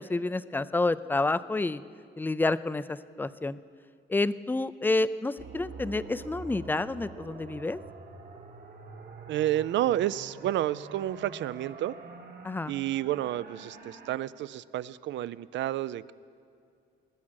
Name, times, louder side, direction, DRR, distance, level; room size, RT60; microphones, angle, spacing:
voice 1, 0.0-1.8 2.2-3.6 4.1-7.8 12.4-12.7, left 2 dB, 10° left, 16 dB, 0.3 m, -29 dB
sound 1, 5.4-14.2, right 4 dB, 50° right, 1.5 m, -46 dB
voice 2, 9.3-11.9 12.7-16.1, right 13 dB, 65° right, 19 dB, 0.4 m, -30 dB
20.0 x 7.3 x 6.4 m, 2.4 s
cardioid pair, 90°, 20 cm